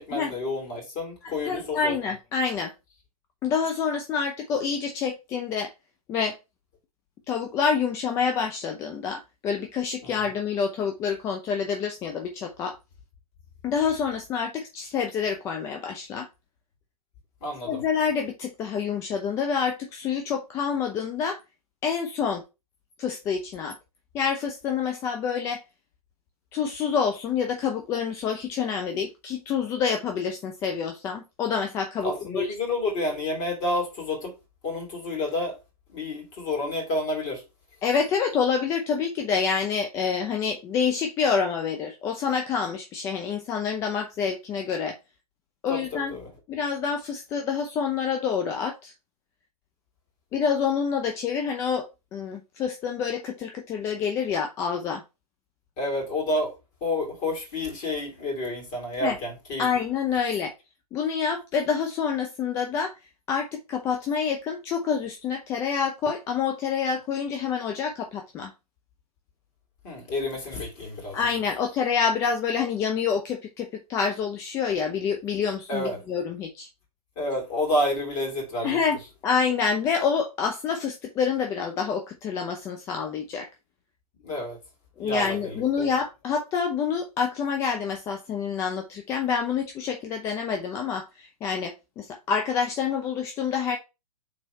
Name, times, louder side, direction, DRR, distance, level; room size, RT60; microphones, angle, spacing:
voice 1, 0.0-2.0 10.0-10.3 17.4-17.8 32.0-34.3 34.6-35.6 35.9-37.4 45.7-46.3 55.8-56.5 56.8-59.7 69.8-71.2 75.7-76.0 77.2-78.8 84.2-84.6 85.0-85.9, left 1 dB, 35° left, 2.7 m, -29 dB
voice 2, 1.2-2.7 3.4-5.7 6.1-6.4 7.3-12.8 13.6-16.3 17.6-21.4 21.8-22.4 23.0-23.7 24.1-25.6 26.5-32.5 37.8-45.0 45.6-46.1 46.5-48.9 50.3-55.0 59.0-59.2 59.6-60.5 60.9-63.0 63.3-68.5 71.1-76.7 78.6-83.5 85.0-93.8, left 6 dB, 15° left, 0.4 m, -27 dB
3.9 x 3.0 x 4.3 m
hypercardioid pair, 135°, 20 cm